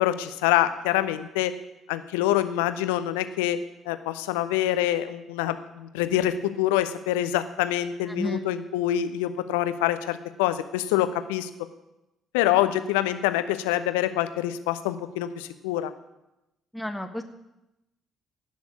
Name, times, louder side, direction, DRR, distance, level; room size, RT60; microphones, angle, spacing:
voice 1, 0.0-1.6 1.9-3.6 3.9-11.5 12.3-15.9, left 13 dB, 70° left, 11 dB, 0.8 m, -25 dB
voice 2, 8.1-8.5 16.7-17.2, left 1 dB, 5° left, 4 dB, 1.4 m, -31 dB
17.5 x 6.3 x 9.6 m, 0.93 s
figure-of-eight pair, 50°, 0 cm